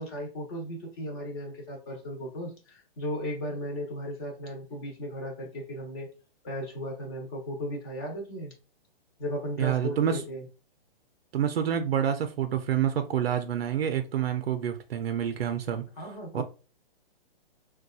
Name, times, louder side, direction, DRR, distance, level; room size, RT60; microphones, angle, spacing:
voice 1, 0.0-6.1 6.4-8.5 9.2-10.4 16.0-16.4, equal, 25° left, 0.8 m, -36 dB
voice 2, 9.6-10.2 11.3-15.8 16.3-16.4, right 9 dB, 75° right, 0.5 m, -27 dB
4.0 x 2.3 x 2.3 m
hypercardioid pair, 160°, 30 cm